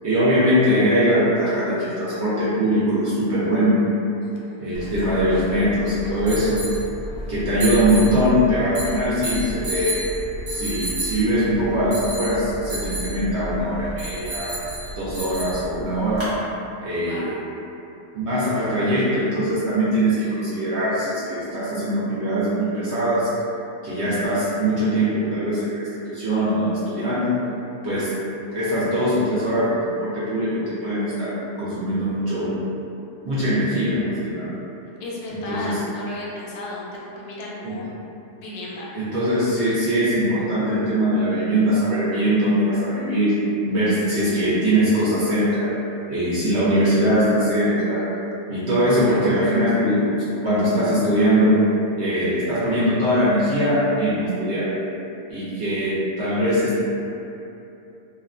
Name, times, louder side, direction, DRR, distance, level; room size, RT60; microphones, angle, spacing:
voice 1, 0.0-3.8 4.6-6.6 7.3-10.1 10.5-14.5 15.0-16.3 16.8-17.4 18.1-23.3 23.8-25.8 26.1-27.4 27.8-28.1 28.5-31.3 31.6-32.5 33.2-34.5 35.5-35.8 37.6-37.8 38.9-43.4 43.6-45.7 46.1-48.0 48.5-50.1 50.4-51.5 52.0-54.7 55.3-56.8, equal, 60° right, -11 dB, 0.7 m, -21 dB
voice 2, 4.2-4.6 16.8-17.4 35.0-37.9 38.4-38.9, left 1 dB, 75° left, -5 dB, 1.0 m, -34 dB
sound 1, 4.7-16.3, right 1 dB, 25° right, 0.8 m, -31 dB
2.7 x 2.1 x 2.4 m, 2.8 s
omnidirectional pair, 1.6 m